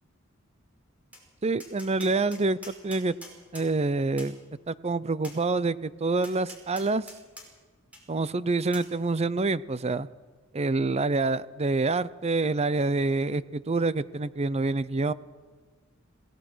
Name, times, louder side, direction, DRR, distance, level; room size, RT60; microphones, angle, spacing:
Tap, 1.1-1.2 1.6-3.7 4.2-4.3 5.2-5.4 6.2-7.5 7.9-8.0 8.7-8.9, left 1 dB, 5° right, 5.4 m, -45 dB
voice 1, 1.4-3.1 3.5-4.4 4.7-7.1 8.1-10.1 10.5-15.1, right 3 dB, 30° right, 17 dB, 0.6 m, -27 dB
27.0 x 18.0 x 6.2 m, 1.4 s
head